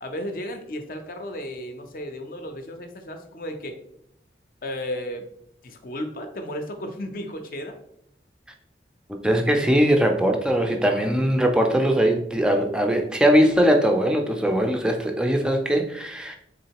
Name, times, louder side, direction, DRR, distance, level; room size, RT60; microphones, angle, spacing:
voice 1, 0.0-3.8 4.6-5.3 5.6-7.8, left 1 dB, 50° left, 6 dB, 0.5 m, -34 dB
voice 2, 9.2-16.4, equal, 5° right, 3 dB, 0.3 m, -20 dB
3.8 x 3.5 x 2.8 m, 0.73 s
head